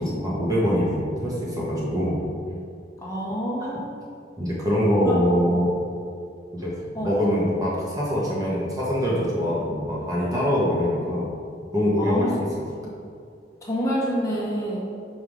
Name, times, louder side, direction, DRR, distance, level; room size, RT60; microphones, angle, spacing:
voice 1, 0.0-2.2 3.6-3.7 4.4-5.7 6.5-11.3 11.7-12.3, equal, 20° right, -6 dB, 1.3 m, -24 dB
voice 2, 3.0-4.1 5.0-5.2 6.9-7.1 12.0-12.3 12.8-12.9 13.6-14.9, equal, 20° left, -6 dB, 1.4 m, -27 dB
5.5 x 4.7 x 4.9 m, 2.4 s
head